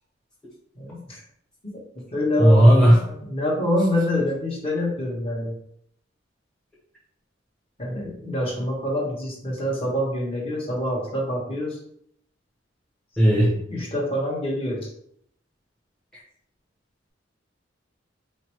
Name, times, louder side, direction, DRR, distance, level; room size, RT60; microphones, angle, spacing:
voice 1, 0.7-1.2 1.6-1.8 2.1-5.5 7.8-11.8 13.7-14.9, left 1 dB, 30° left, -3 dB, 1.3 m, -26 dB
voice 2, 2.4-2.9 13.2-13.5, equal, 5° left, -7 dB, 0.9 m, -14 dB
4.3 x 2.8 x 3.0 m, 0.69 s
head